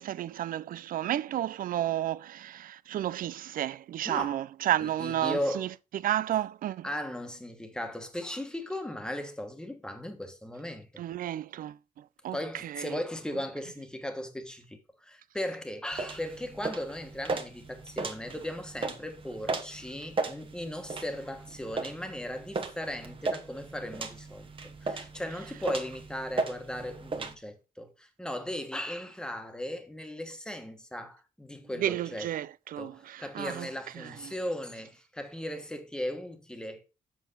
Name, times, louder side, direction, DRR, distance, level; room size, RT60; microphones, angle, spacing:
voice 1, 0.0-5.7 5.9-6.9 11.0-11.8 12.2-12.4 12.6-12.9 31.8-33.7 34.0-34.3, right 12 dB, 70° right, 0.4 m, -32 dB
voice 2, 4.0-4.4 4.8-5.7 6.8-11.0 12.3-32.3 32.8-36.9, left 1 dB, 5° left, 1.4 m, -37 dB
sound 1, 15.9-27.3, right 3 dB, 35° right, 1.3 m, -37 dB
7.9 x 6.3 x 4.0 m
cardioid pair, 125°, 15 cm